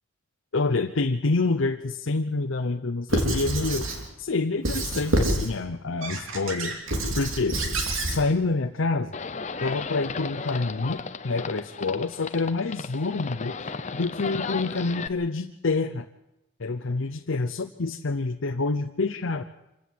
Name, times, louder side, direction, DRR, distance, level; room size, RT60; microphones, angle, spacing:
voice 1, 0.5-3.9 4.2-6.8 7.1-7.6 8.1-9.2 9.6-13.6 13.9-16.1 16.6-19.4, left 3 dB, 75° left, 5 dB, 0.7 m, -27 dB
Squeak / Writing, 3.1-4.0 4.6-5.5 6.0-8.2, right 1 dB, 90° right, 3.2 m, -27 dB
Livestock farm animals working animals, 9.1-15.1, left 4 dB, 35° left, 0.7 m, -35 dB
25.5 x 15.5 x 7.6 m, 0.93 s
head